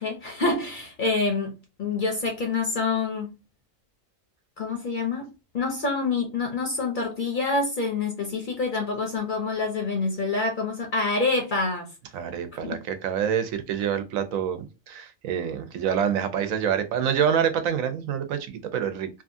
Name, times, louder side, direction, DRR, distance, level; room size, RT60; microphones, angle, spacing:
voice 1, 0.0-1.5 1.8-3.3 4.6-11.9 12.6-12.8, left 3 dB, 55° left, 0.6 m, -27 dB
voice 2, 12.1-19.1, right 8 dB, 85° right, 1.0 m, -26 dB
2.7 x 2.4 x 2.5 m
omnidirectional pair, 1.4 m